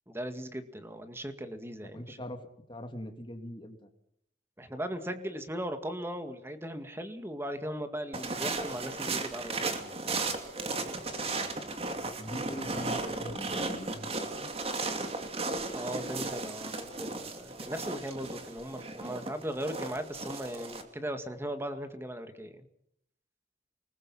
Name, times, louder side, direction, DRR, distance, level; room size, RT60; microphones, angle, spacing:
voice 1, 0.1-2.2 4.6-10.0 15.7-22.7, equal, 15° right, 8 dB, 2.1 m, -38 dB
voice 2, 1.8-2.4 2.7-3.9 11.3-11.5 12.0-14.5, equal, 30° left, 5 dB, 2.9 m, -42 dB
sound 1, 8.1-20.8, right 3 dB, 35° right, 2.8 m, -35 dB
28.5 x 20.5 x 5.7 m, 0.71 s
head